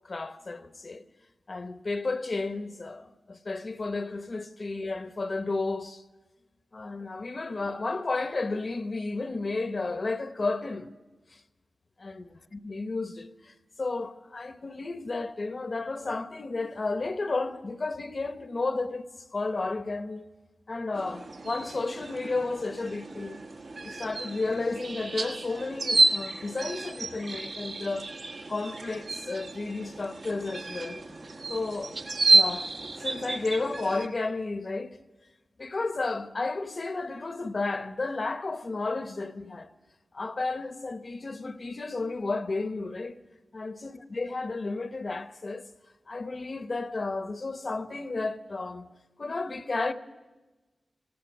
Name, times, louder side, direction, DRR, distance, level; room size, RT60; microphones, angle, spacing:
voice 1, 0.0-1.0 1.5-6.0 6.7-10.9 11.3-11.4 12.0-19.1 19.3-20.3 20.7-23.4 23.8-28.1 28.5-31.0 31.5-32.0 32.3-32.7 33.0-35.0 35.6-39.7 40.1-43.2 43.5-45.6 46.1-48.9 49.2-49.9, left 3 dB, 45° left, 0.9 m, -32 dB
sound 1, 20.9-34.1, right 3 dB, 65° right, 1.5 m, -30 dB
18.5 x 17.0 x 9.3 m
wide cardioid pair, 105°, 0 cm